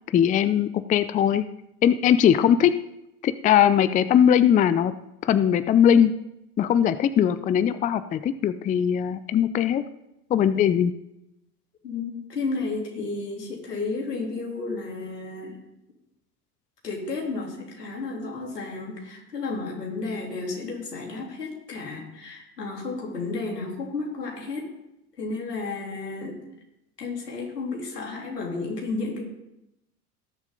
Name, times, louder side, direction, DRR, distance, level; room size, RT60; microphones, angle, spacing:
voice 1, 0.1-1.4 1.8-2.7 3.2-4.9 5.2-6.1 6.6-9.8 10.3-10.9, left 9 dB, 20° left, 14 dB, 0.4 m, -20 dB
voice 2, 11.8-15.6 16.8-24.7 25.2-26.4 27.0-29.2, left 3 dB, 85° left, -2 dB, 3.4 m, -32 dB
18.0 x 7.2 x 3.9 m, 0.87 s
hypercardioid pair, 80°, 47 cm